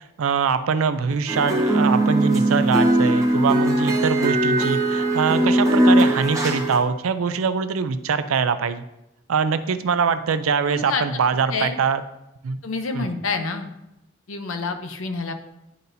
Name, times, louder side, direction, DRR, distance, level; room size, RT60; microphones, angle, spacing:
voice 1, 0.2-8.8 9.3-12.0 12.4-12.6 12.9-13.1, right 5 dB, 85° right, 12 dB, 0.4 m, -23 dB
sound 1, 1.3-6.8, right 1 dB, 15° right, 1.0 m, -19 dB
voice 2, 10.6-11.0 11.5-11.8 12.6-13.7 14.3-15.3, left 4 dB, 70° left, 7 dB, 0.7 m, -28 dB
11.0 x 4.0 x 2.7 m, 0.88 s
head